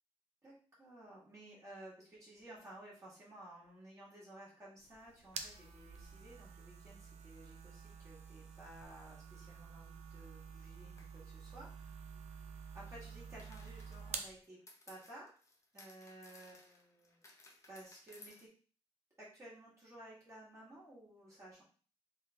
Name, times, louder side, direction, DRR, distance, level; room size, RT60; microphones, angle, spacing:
voice 1, 0.4-14.6 14.9-15.3 15.7-17.2 17.7-18.5 19.2-21.6, right 1 dB, 25° right, -7 dB, 1.5 m, -55 dB
sound 1, 4.8-14.4, right 6 dB, 80° right, 0.5 m, -49 dB
sound 2, 8.6-8.9 11.0-11.1 13.4-18.5, left 2 dB, 25° left, 0.7 m, -61 dB
3.3 x 3.2 x 3.3 m, 0.40 s
wide cardioid pair, 145°, 11 cm